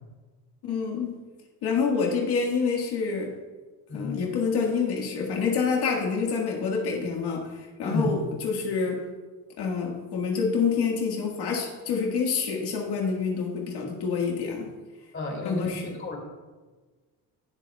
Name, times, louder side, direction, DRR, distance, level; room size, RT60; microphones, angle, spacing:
voice 1, 0.6-1.2 1.6-3.3 3.9-9.0 9.6-14.7 15.4-15.9, left 5 dB, 80° left, -1 dB, 1.8 m, -27 dB
voice 2, 3.9-4.2 7.8-8.2 15.1-16.2, left 2 dB, 30° left, 0 dB, 2.3 m, -31 dB
19.0 x 6.7 x 2.3 m, 1.3 s
cardioid pair, 135°, 39 cm